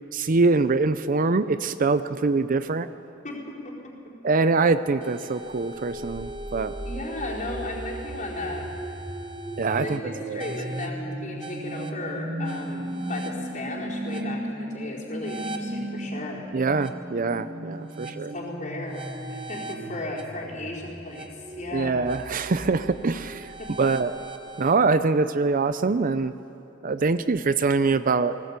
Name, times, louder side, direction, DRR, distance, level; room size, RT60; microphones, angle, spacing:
voice 1, 0.1-2.9 4.2-6.7 9.6-10.0 10.3-10.4 16.5-18.3 21.7-23.5 23.8-24.2 24.6-26.3 26.8-28.4, right 3 dB, 40° right, 12 dB, 0.6 m, -24 dB
voice 2, 3.2-4.1 6.8-8.7 9.7-16.5 18.3-22.0 23.6-23.9, left 2 dB, 40° left, -4 dB, 4.3 m, -35 dB
sound 1, 5.0-24.8, right 1 dB, 25° right, 1.2 m, -36 dB
19.5 x 18.5 x 8.3 m, 3.0 s
head